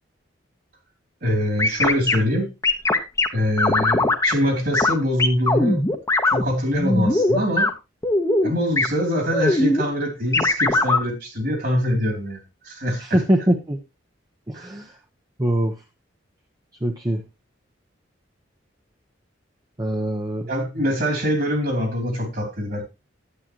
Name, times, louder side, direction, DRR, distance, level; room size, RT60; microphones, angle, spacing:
voice 1, 1.2-2.5 3.3-5.8 6.2-7.7 8.4-13.2 14.5-14.7 20.5-22.8, equal, 55° right, 3.1 m, -24 dB
sound 1, 1.6-2.1 2.6-3.3 3.6-4.3 4.7-4.9 5.2-6.4 6.7-7.7 8.0-8.5 8.8-8.9 9.3-9.8 10.3-11.0, left 2 dB, 15° left, 1.0 m, -19 dB
voice 2, 13.0-13.8 14.5-14.9 15.4-15.7 16.8-17.2 19.8-20.4, right 1 dB, 20° right, 0.9 m, -22 dB
11.5 x 8.9 x 3.0 m
head